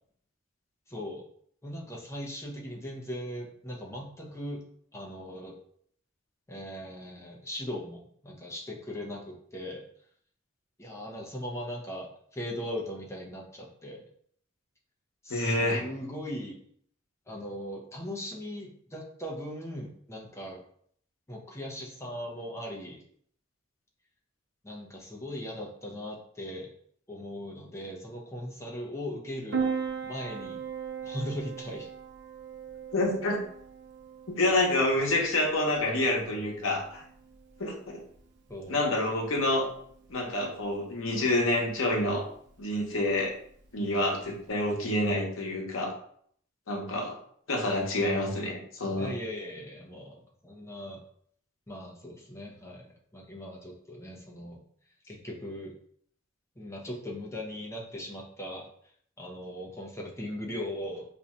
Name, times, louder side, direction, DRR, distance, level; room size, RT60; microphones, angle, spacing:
voice 1, 0.9-1.2 1.6-4.6 4.9-5.5 6.5-9.8 10.8-14.0 15.2-16.6 17.3-20.6 21.3-23.0 24.6-26.7 27.1-29.6 30.0-30.6 31.0-31.9 38.5-38.9 49.0-51.0 51.7-54.6 55.1-55.7 56.6-61.1, equal, 15° left, -2 dB, 0.6 m, -39 dB
voice 2, 15.3-15.8 32.9-33.4 34.3-37.0 37.6-38.0 38.7-39.7 40.1-42.2 42.6-43.3 43.7-45.9 46.7-47.2 47.5-49.1, left 1 dB, 80° left, 0 dB, 0.8 m, -27 dB
Piano, 29.5-44.5, right 6 dB, 60° right, 0.6 m, -40 dB
2.6 x 2.3 x 4.1 m, 0.63 s
head